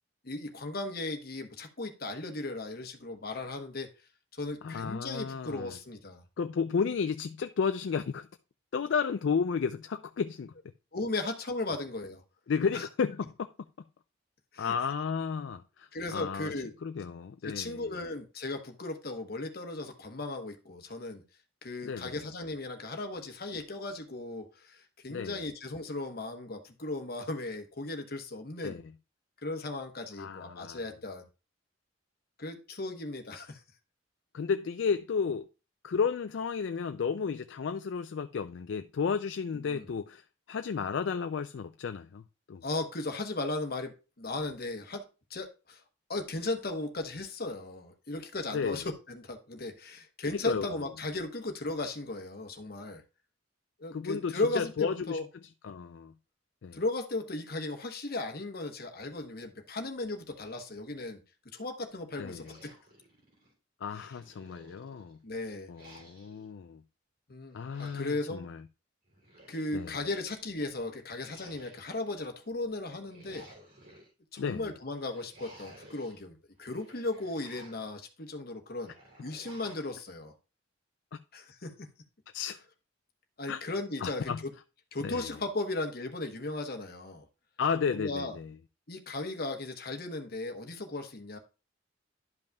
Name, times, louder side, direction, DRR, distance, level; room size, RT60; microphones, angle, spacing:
voice 1, 0.2-3.9 4.4-6.2 10.9-12.2 12.7-12.9 14.5-14.8 15.9-16.7 17.4-21.2 21.6-28.8 29.4-31.3 32.4-33.6 39.5-39.9 42.6-45.8 46.1-53.0 53.8-55.3 56.7-61.2 61.5-62.7 64.0-64.1 65.2-65.7 67.3-68.5 69.5-73.5 74.3-78.9 79.2-80.3 81.3-81.9 83.4-84.5 84.9-87.2 87.9-88.3 88.9-91.4, left 2 dB, 50° left, 1.1 m, -36 dB
voice 2, 4.6-5.7 6.4-8.3 8.7-10.5 12.5-13.3 14.6-16.5 16.8-17.8 21.8-22.2 25.1-25.4 28.6-28.8 30.2-30.8 34.3-35.5 35.8-40.2 40.5-42.2 42.5-42.6 48.5-48.8 50.5-50.7 53.9-55.2 55.6-56.1 56.6-56.8 62.2-62.5 63.8-65.2 65.7-66.8 67.5-68.6 69.7-69.9 74.4-74.6 82.3-82.6 83.5-83.6 84.0-84.4 85.0-85.3 87.6-88.5, left 6 dB, 65° left, 0.4 m, -32 dB
sound 1, 62.4-63.5 63.9-65.2 65.7-66.5 67.5-68.3 69.1-70.0 71.1-72.1 72.9-74.1 74.9-76.2 76.6-77.9 78.8-79.9, right 1 dB, 50° right, 3.0 m, -55 dB
12.0 x 5.4 x 2.3 m
head